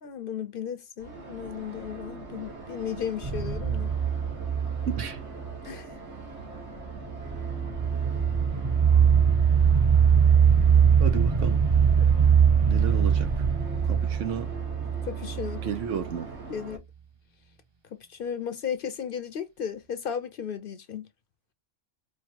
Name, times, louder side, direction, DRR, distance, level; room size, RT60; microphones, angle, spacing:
voice 1, 0.0-3.9 5.6-5.9 12.0-12.2 15.0-15.7 16.5-16.8 17.9-21.1, left 8 dB, 55° left, 0.7 m, -35 dB
sound 1, 1.0-16.8, right 3 dB, 70° right, 1.6 m, -42 dB
sound 2, 3.2-5.5 6.9-15.8, right 7 dB, 25° right, 0.8 m, -22 dB
voice 2, 4.9-5.2 11.0-11.6 12.7-13.3 13.9-14.5 15.6-16.3, right 7 dB, 90° right, 1.2 m, -32 dB
4.7 x 2.4 x 2.8 m
omnidirectional pair, 1.2 m